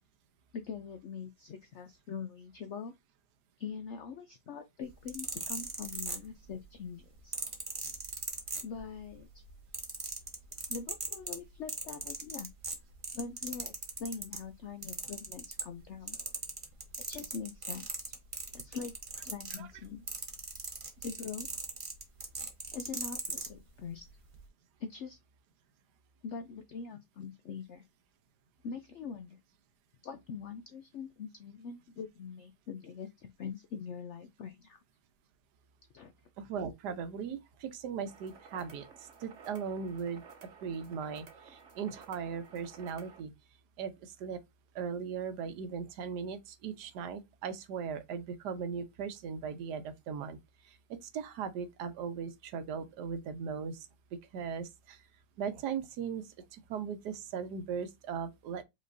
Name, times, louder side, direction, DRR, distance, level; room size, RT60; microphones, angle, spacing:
voice 1, 0.5-2.9 3.6-7.4 8.6-9.4 10.7-12.5 13.1-16.2 17.0-18.1 18.5-18.9 19.2-20.1 21.0-21.5 22.7-24.1 24.8-25.2 26.2-27.8 28.6-29.4 30.0-34.8 35.9-36.1, left 6 dB, 75° left, 0.6 m, -43 dB
sound 1, 4.9-6.6 7.3-9.1 9.4-14.4 14.8-23.5 24.2-24.4, right 3 dB, 25° right, 0.8 m, -39 dB
voice 2, 36.4-40.2 40.6-43.3 43.8-44.4 44.7-50.4 50.6-55.0 55.4-58.6, right 6 dB, 80° right, 1.3 m, -38 dB
sound 2, 38.1-43.2, right 5 dB, 50° right, 1.1 m, -54 dB
5.2 x 4.0 x 2.6 m
omnidirectional pair, 1.8 m